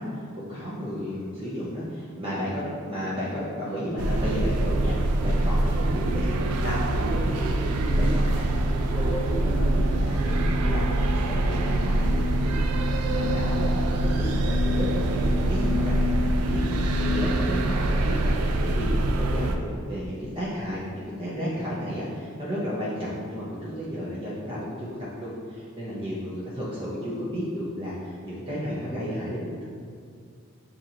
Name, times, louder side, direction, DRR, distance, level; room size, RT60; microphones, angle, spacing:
voice 1, 0.0-7.7 7.9-15.2 15.5-29.7, equal, 25° right, -8 dB, 0.6 m, -33 dB
sound 1, 4.0-19.6, right 2 dB, 85° right, 0.4 m, -24 dB
sound 2, 8.1-17.2, left 6 dB, 65° left, 0.6 m, -34 dB
7.3 x 2.6 x 2.8 m, 2.2 s
head